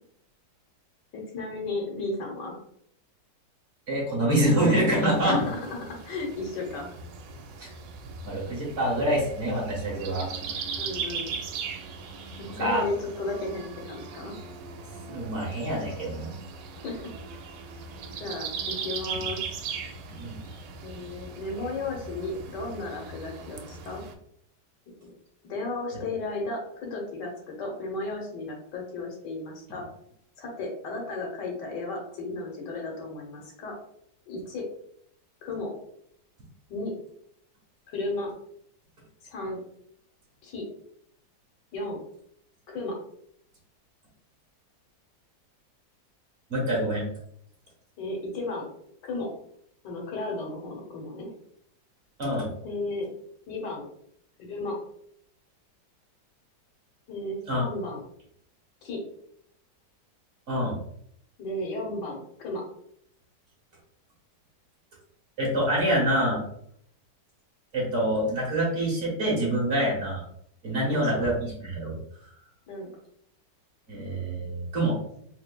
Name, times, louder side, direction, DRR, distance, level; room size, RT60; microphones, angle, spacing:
voice 1, 1.1-2.6 5.2-7.0 10.8-11.3 12.5-14.4 16.8-17.1 18.2-19.5 20.8-24.0 25.0-25.1 25.5-29.8 30.4-33.7 34.3-34.7 35.4-35.7 36.7-36.9 37.9-38.3 39.2-39.6 40.4-40.6 41.7-42.0 42.7-43.0 48.0-48.7 49.0-49.3 49.8-51.3 52.6-53.1 53.5-53.8 54.4-54.8 57.1-58.0 58.8-59.0 61.4-62.6 70.9-71.3 72.7-72.9, left 2 dB, 75° left, 0 dB, 1.5 m, -34 dB
voice 2, 3.9-5.3 7.6-7.7 8.2-10.3 12.6-12.8 15.1-16.3 20.1-20.4 46.5-47.0 52.2-52.5 57.5-57.6 60.5-60.7 65.4-66.4 67.7-70.2 70.6-72.0 73.9-75.0, right 1 dB, 45° right, -4 dB, 1.5 m, -26 dB
sound 1, 4.9-24.1, right 5 dB, 90° right, 1.3 m, -39 dB
4.4 x 2.8 x 2.2 m, 0.68 s
omnidirectional pair, 1.9 m